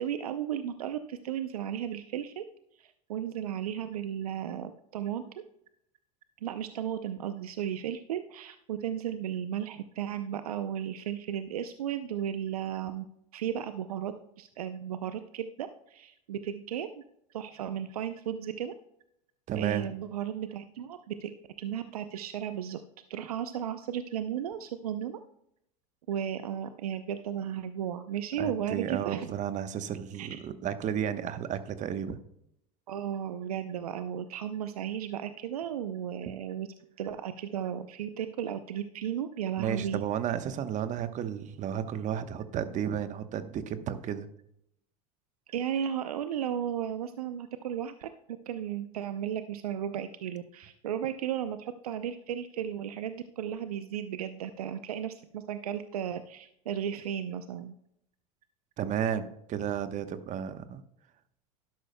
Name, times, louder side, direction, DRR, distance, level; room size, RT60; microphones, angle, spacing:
voice 1, 0.0-2.4 2.8-5.2 6.4-13.1 13.3-17.0 17.3-18.7 19.6-21.3 21.6-22.8 23.1-25.2 26.1-29.3 30.1-30.4 32.9-36.7 37.0-40.0 45.5-48.1 48.5-57.7, right 9 dB, 85° right, 10 dB, 0.6 m, -35 dB
voice 2, 19.5-19.9 28.4-32.2 39.6-44.3 58.8-60.8, right 9 dB, 40° right, 11 dB, 1.0 m, -33 dB
12.0 x 11.0 x 2.2 m, 0.76 s
hypercardioid pair, 90°, 19 cm